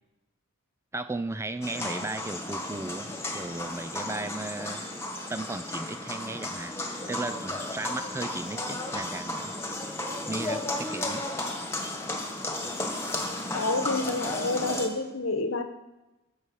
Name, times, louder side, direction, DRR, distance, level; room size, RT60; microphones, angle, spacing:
voice 1, 0.9-3.1 3.3-4.8 5.3-6.8 7.1-9.5 10.3-11.2, right 2 dB, 15° right, 11 dB, 0.4 m, -35 dB
sound 1, 1.6-14.9, left 1 dB, 15° left, 1.7 m, -34 dB
voice 2, 13.5-15.6, left 2 dB, 70° left, 8 dB, 1.2 m, -28 dB
18.0 x 7.1 x 6.3 m, 1.0 s
head